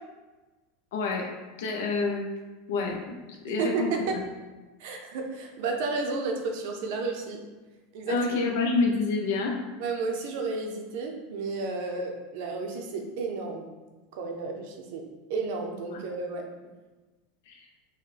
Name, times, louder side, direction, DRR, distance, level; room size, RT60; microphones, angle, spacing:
voice 1, 0.9-1.3 1.6-2.3 2.7-3.2 3.4-4.2 8.1-9.6 15.9-16.0 17.5-17.7, left 4 dB, 70° left, 1 dB, 0.6 m, -28 dB
voice 2, 3.5-4.2 4.8-7.4 7.9-8.2 9.8-13.7 14.1-15.0 15.3-16.4, right 4 dB, 55° right, 3 dB, 0.6 m, -32 dB
5.4 x 2.2 x 3.3 m, 1.2 s
supercardioid pair, 175°, 0 cm